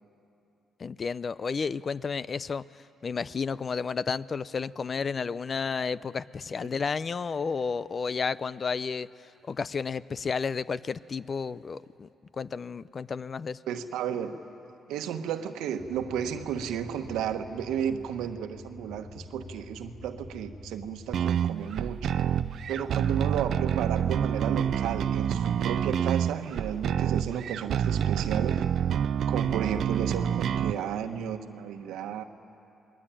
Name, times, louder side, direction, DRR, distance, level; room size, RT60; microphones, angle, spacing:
voice 1, 0.8-2.6 3.0-9.1 9.5-12.1 12.4-13.6, left 5 dB, 40° left, 18 dB, 0.5 m, -32 dB
voice 2, 13.7-14.4 14.9-22.2 22.7-28.6 29.3-32.2, right 8 dB, 90° right, 8 dB, 1.2 m, -33 dB
sound 1, 15.8-25.8, left 1 dB, 70° left, 6.1 m, -47 dB
sound 2, 21.1-30.7, right 9 dB, 65° right, 0.6 m, -27 dB
28.0 x 21.5 x 9.0 m, 2.8 s
cardioid pair, 90°, 0 cm